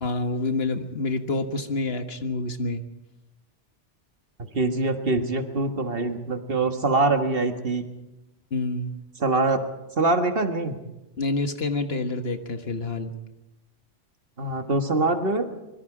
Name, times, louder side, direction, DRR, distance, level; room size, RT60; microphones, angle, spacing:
voice 1, 0.0-2.8 8.5-8.9 11.2-13.1, left 3 dB, 60° left, 7 dB, 1.7 m, -27 dB
voice 2, 4.5-7.8 9.2-9.6 10.0-10.8 14.4-15.5, right 2 dB, 55° right, 6 dB, 1.8 m, -24 dB
25.0 x 22.5 x 5.0 m, 0.97 s
omnidirectional pair, 1.2 m